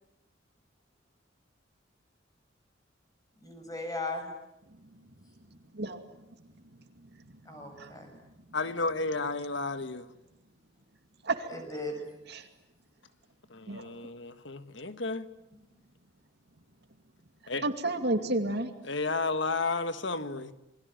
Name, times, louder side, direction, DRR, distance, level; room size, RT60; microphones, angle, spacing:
voice 1, 3.4-4.3 7.5-8.1 11.5-12.1, left 2 dB, 20° left, 4 dB, 7.0 m, -37 dB
voice 2, 5.7-6.0 7.0-7.1 7.6-7.9 11.2-11.5 12.3-12.5 13.7-13.9 17.6-18.7, right 2 dB, 55° right, 7 dB, 2.4 m, -31 dB
voice 3, 8.5-10.1 13.5-15.2 17.5-17.6 18.9-20.5, left 3 dB, 60° left, 10 dB, 1.7 m, -32 dB
28.5 x 22.0 x 9.1 m, 0.84 s
head